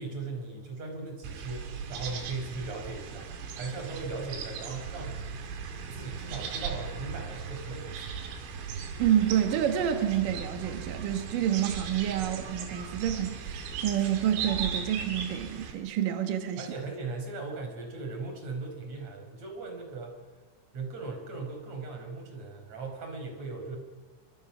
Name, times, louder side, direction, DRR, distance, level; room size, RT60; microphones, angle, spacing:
voice 1, 0.0-3.3 3.5-5.2 5.9-8.1 12.2-12.3 16.6-20.2 20.7-23.8, right 3 dB, 35° right, 5.8 m, -38 dB
sound 1, 1.2-15.7, right 6 dB, 90° right, 5.2 m, -38 dB
voice 2, 9.0-16.7, right 10 dB, 75° right, 2.0 m, -28 dB
26.5 x 26.0 x 6.1 m
omnidirectional pair, 5.8 m